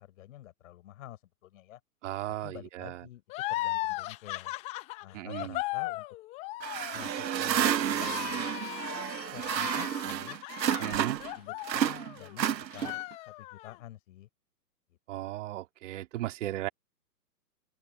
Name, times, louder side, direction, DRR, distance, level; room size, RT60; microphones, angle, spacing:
voice 1, 0.0-1.8 2.4-3.2 3.5-4.5 5.0-6.0 6.9-8.5 9.3-10.4 10.8-11.0 11.4-13.0 13.3-14.3 15.1-15.3, left 13 dB, 50° left, 6.3 m, -49 dB
voice 2, 2.0-3.1 5.1-5.6 10.8-11.2 15.1-16.7, right 15 dB, 45° right, 2.4 m, -36 dB
sound 1, 3.3-12.4 12.7-13.8, left 18 dB, 15° left, 0.6 m, -37 dB
sound 2, 6.6-11.3 11.6-13.1, right 9 dB, 85° right, 0.9 m, -31 dB
open air
hypercardioid pair, 130°, 49 cm